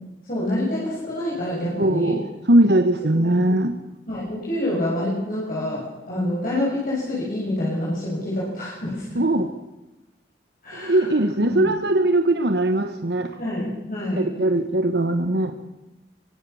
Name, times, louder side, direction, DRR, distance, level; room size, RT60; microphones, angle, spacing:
voice 1, 0.2-2.2 4.1-9.2 10.6-11.1 11.4-11.6 13.4-14.3, left 1 dB, 50° left, -7 dB, 7.5 m, -27 dB
voice 2, 1.8-3.7 9.1-9.5 10.7-13.4 14.2-15.5, right 1 dB, 70° right, 7 dB, 1.4 m, -20 dB
24.5 x 24.0 x 7.2 m, 1.0 s
head